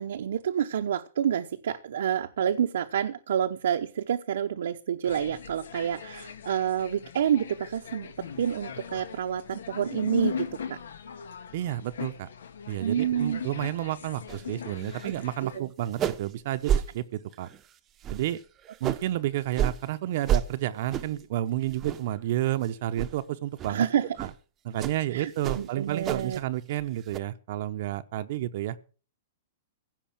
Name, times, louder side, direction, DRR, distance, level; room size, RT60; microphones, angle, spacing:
voice 1, 0.0-10.8 12.8-13.4 15.0-15.1 15.4-15.7 23.7-24.1 25.1-25.3 25.5-26.4, right 9 dB, 75° right, 0.9 m, -28 dB
sound 1, 5.0-15.6, left 7 dB, 90° left, 1.9 m, -39 dB
voice 2, 11.5-12.3 12.7-17.5 18.1-18.4 18.8-23.9 24.2-24.3 24.6-28.8, right 13 dB, 50° right, 0.8 m, -31 dB
sound 2, 14.3-14.4 14.8-15.2 15.5-15.6 15.9-16.3 16.6-16.9 17.3-17.6 18.0-19.1 19.5-19.8 20.2-20.5 20.9-21.2 21.6-22.2 22.5-22.7 23.0-23.1 23.6-23.7 24.2-24.3 24.8-25.0 25.4-26.4 26.7-27.2, right 9 dB, 20° right, 0.8 m, -30 dB
16.0 x 5.4 x 8.8 m
hypercardioid pair, 155°, 0 cm